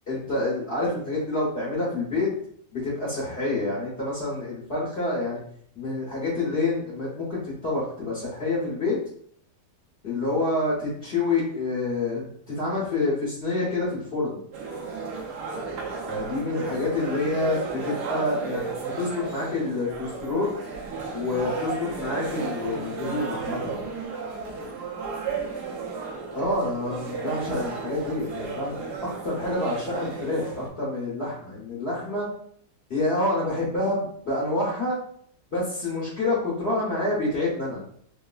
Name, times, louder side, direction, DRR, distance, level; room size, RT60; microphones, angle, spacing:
voice 1, 0.1-2.3 2.7-5.4 5.8-9.0 10.0-14.4 16.1-20.5 21.1-23.8 26.3-32.3 32.9-35.0 35.5-37.8, left 2 dB, 45° left, -8 dB, 0.9 m, -27 dB
sound 1, 14.5-30.7, right 4 dB, 70° right, 1.1 m, -34 dB
3.7 x 2.0 x 2.3 m, 0.63 s
omnidirectional pair, 1.9 m